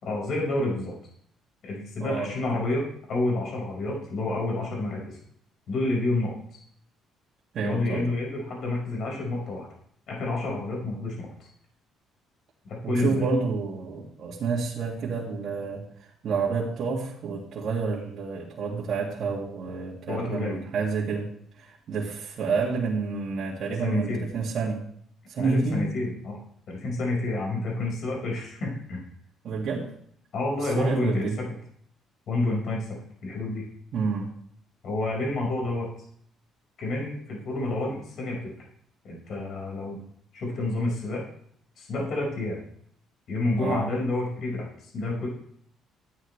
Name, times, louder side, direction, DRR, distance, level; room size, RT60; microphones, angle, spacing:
voice 1, 0.0-0.9 1.6-5.2 5.7-6.6 7.6-9.7 10.1-11.5 12.6-13.3 20.1-20.6 23.8-24.3 25.4-26.4 26.7-29.0 30.3-31.6 32.3-33.6 34.8-35.9 36.8-38.5 39.0-40.0 40.3-41.3 41.8-42.6 43.3-45.3, left 2 dB, 60° left, -2 dB, 5.3 m, -29 dB
voice 2, 7.5-8.0 12.8-15.9 16.2-21.3 21.6-24.9 25.3-25.9 29.4-29.9 30.7-31.4 33.9-34.3 43.6-43.8, right 4 dB, 60° right, -5 dB, 2.3 m, -29 dB
13.0 x 9.5 x 3.3 m, 0.65 s
cardioid pair, 105°, 0 cm